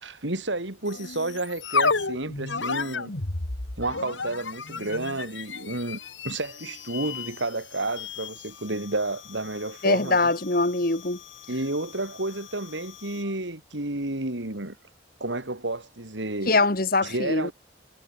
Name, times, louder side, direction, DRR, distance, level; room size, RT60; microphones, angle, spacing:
voice 1, 0.0-3.1 3.8-6.0 6.2-10.2 11.5-14.8 15.2-16.5 17.0-17.5, right 2 dB, 80° right, 3.3 m, -31 dB
sound 1, 0.9-13.3, left 4 dB, 80° left, 2.3 m, -34 dB
voice 2, 9.8-11.2 16.5-17.5, left 3 dB, 50° left, 1.9 m, -23 dB
head